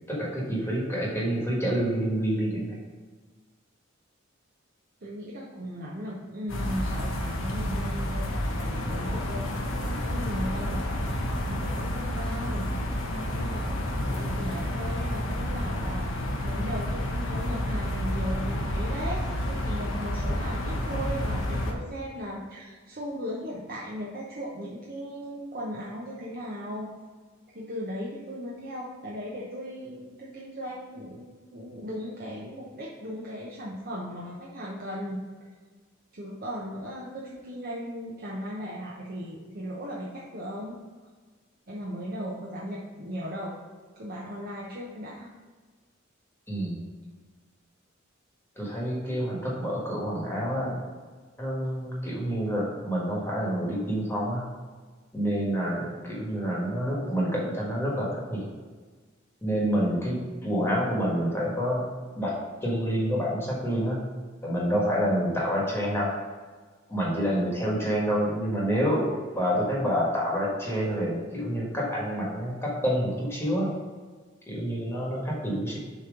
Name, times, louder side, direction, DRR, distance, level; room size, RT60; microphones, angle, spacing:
voice 1, 0.1-2.7 46.5-46.8 48.6-50.9 51.4-54.4 55.1-58.4 59.4-61.8 62.2-62.3 62.6-64.0 64.4-66.1 66.9-73.7 74.5-75.8, equal, 10° left, -5 dB, 1.4 m, -28 dB
voice 2, 5.0-10.9 11.5-26.9 27.5-35.5 36.1-40.8 41.7-43.5 43.9-45.3, equal, 50° right, -4 dB, 0.8 m, -37 dB
breeze rustling in trees, 6.5-21.7, left 1 dB, 80° left, 0.9 m, -30 dB
6.9 x 3.0 x 5.1 m, 1.4 s
head